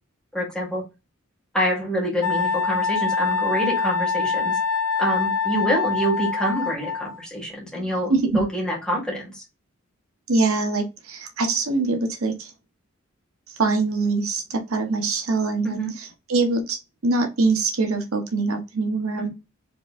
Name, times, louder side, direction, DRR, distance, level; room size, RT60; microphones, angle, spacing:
voice 1, 0.3-0.8 1.5-4.6 5.0-9.4 15.6-15.9 19.2-19.3, equal, 5° left, 2.0 m, -26 dB
Wind instrument woodwind instrument, 2.2-7.2, left 5 dB, 75° left, 0.7 m, -24 dB
voice 2, 8.1-8.4 10.3-12.5 13.5-16.8 17.0-19.3, right 3 dB, 85° right, 1.0 m, -23 dB
4.5 x 3.6 x 2.5 m
head